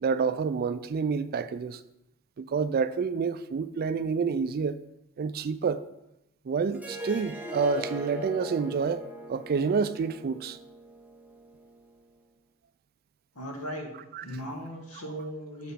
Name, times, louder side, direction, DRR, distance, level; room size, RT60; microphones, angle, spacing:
voice 1, 0.0-1.8 2.4-4.8 5.2-5.8 6.5-9.0 9.3-10.6 14.1-14.2, right 5 dB, 45° right, 0.3 m, -28 dB
Harp, 6.7-11.9, equal, 5° right, 0.7 m, -41 dB
voice 2, 13.3-13.9 14.2-15.7, equal, 80° left, 1.8 m, -37 dB
7.5 x 4.7 x 5.1 m
head